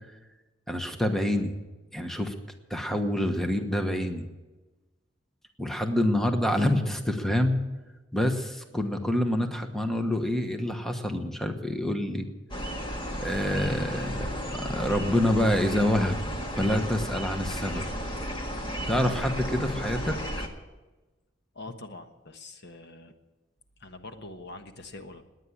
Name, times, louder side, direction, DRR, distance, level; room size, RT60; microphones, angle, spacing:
voice 1, 0.7-1.6 1.9-2.3 2.7-4.3 5.6-7.6 8.1-12.3 13.2-16.2 16.6-17.8 18.9-20.2, left 1 dB, ahead, 6 dB, 1.2 m, -27 dB
sound 1, 12.5-20.5, equal, 25° left, 1.7 m, -33 dB
voice 2, 21.5-23.1 23.8-25.2, left 2 dB, 60° left, 7 dB, 1.3 m, -44 dB
19.5 x 9.7 x 7.3 m, 1.2 s
head